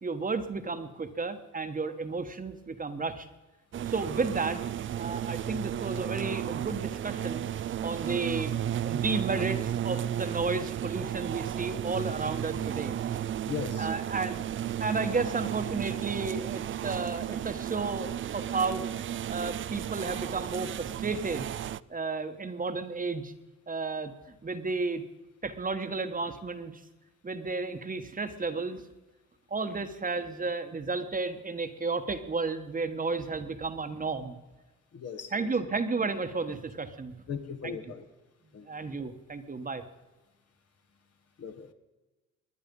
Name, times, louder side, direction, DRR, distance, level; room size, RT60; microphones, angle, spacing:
voice 1, 0.0-3.3 3.9-4.6 4.9-7.5 7.8-13.2 13.8-14.4 14.8-18.8 19.3-21.5 21.9-23.3 23.7-24.1 24.4-25.0 25.4-26.8 27.2-28.8 29.5-34.4 35.3-37.1 37.6-37.8 38.7-39.8, right 4 dB, 25° right, 8 dB, 1.3 m, -32 dB
sound 1, 3.7-21.8, right 10 dB, 45° right, 0.4 m, -33 dB
voice 2, 13.5-13.9 34.9-35.5 37.3-38.1 38.5-38.7 41.4-41.7, left 7 dB, 55° left, 7 dB, 1.5 m, -38 dB
21.5 x 9.8 x 5.4 m, 1.1 s
cardioid pair, 90°, 30 cm